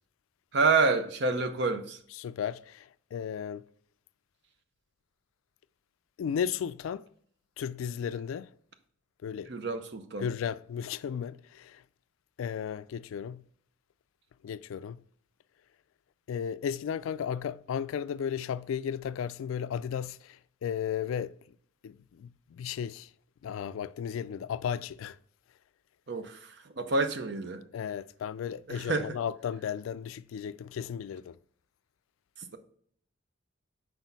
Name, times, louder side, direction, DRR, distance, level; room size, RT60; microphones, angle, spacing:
voice 1, 0.5-2.0 9.5-10.3 26.1-27.6 28.7-29.1 32.4-32.6, right 4 dB, 60° right, 0.7 m, -28 dB
voice 2, 2.2-3.7 6.2-7.1 7.6-8.5 9.2-9.5 10.2-11.8 12.4-13.4 14.4-15.0 16.3-21.4 21.8-23.1 23.4-25.2 27.7-31.4, left 8 dB, 90° left, 0.3 m, -34 dB
6.1 x 4.7 x 4.0 m
head